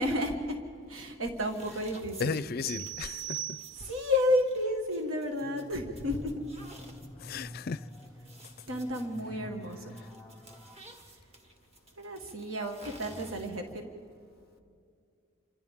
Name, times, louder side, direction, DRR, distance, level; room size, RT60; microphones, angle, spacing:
voice 1, 0.0-2.3 3.8-6.4 8.7-10.0 12.0-13.9, left 1 dB, 90° right, 1.7 m, -31 dB
sound 1, 1.3-13.8, right 1 dB, 30° right, 1.7 m, -53 dB
voice 2, 2.2-3.6 7.2-7.9, left 5 dB, 50° left, 0.4 m, -34 dB
sound 2, 2.6-4.2, right 13 dB, 55° right, 1.2 m, -39 dB
sound 3, 5.4-10.8, left 1 dB, 5° left, 0.8 m, -48 dB
28.0 x 26.0 x 3.6 m
head